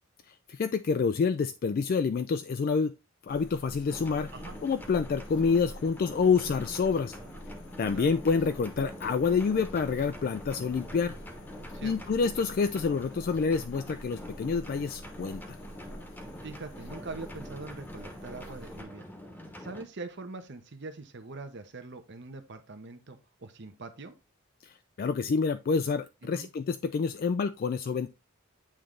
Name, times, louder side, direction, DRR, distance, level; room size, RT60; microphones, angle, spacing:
voice 1, 0.3-2.9 3.2-4.3 4.6-7.2 7.8-11.1 11.8-15.6 24.6-28.1, left 5 dB, 45° left, 0.3 m, -28 dB
sound 1, 3.3-18.8, equal, 60° left, 0.9 m, -48 dB
sound 2, 3.9-19.8, equal, 10° left, 1.0 m, -45 dB
voice 2, 16.4-19.1 19.6-24.1 26.2-26.5, right 3 dB, 55° right, 0.9 m, -43 dB
8.8 x 3.3 x 3.8 m
head